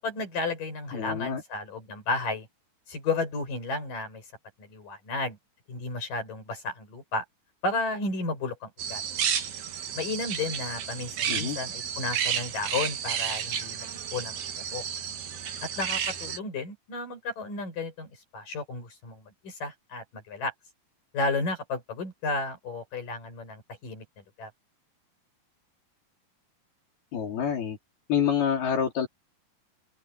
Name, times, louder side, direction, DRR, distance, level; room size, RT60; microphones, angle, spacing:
voice 1, 0.0-2.5 2.9-4.2 4.6-5.4 5.7-7.2 7.6-9.0 10.0-14.4 14.7-14.8 15.6-20.5 21.1-24.0 24.4-24.5, left 3 dB, 60° left, 8.8 m, -33 dB
voice 2, 0.9-1.4 11.3-11.6 27.1-27.8 28.1-29.1, left 8 dB, 80° left, 5.8 m, -27 dB
sound 1, 8.8-16.4, right 8 dB, 80° right, 4.2 m, -32 dB
open air
omnidirectional pair, 4.4 m